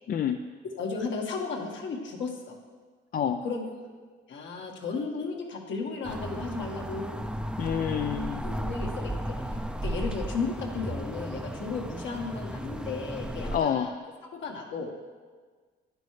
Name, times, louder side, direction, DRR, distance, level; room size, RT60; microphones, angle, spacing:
voice 1, 0.1-0.4 3.1-3.4 7.6-8.5 13.5-13.9, left 8 dB, 45° left, 7 dB, 0.4 m, -28 dB
voice 2, 0.6-2.6 3.4-3.8 4.3-7.2 8.4-9.3 9.8-13.9 14.3-15.0, left 4 dB, 70° left, 1 dB, 1.5 m, -34 dB
sound 1, 6.0-13.6, right 1 dB, 5° right, 0.6 m, -34 dB
10.5 x 9.9 x 3.3 m, 1.5 s
cardioid pair, 90°, 20 cm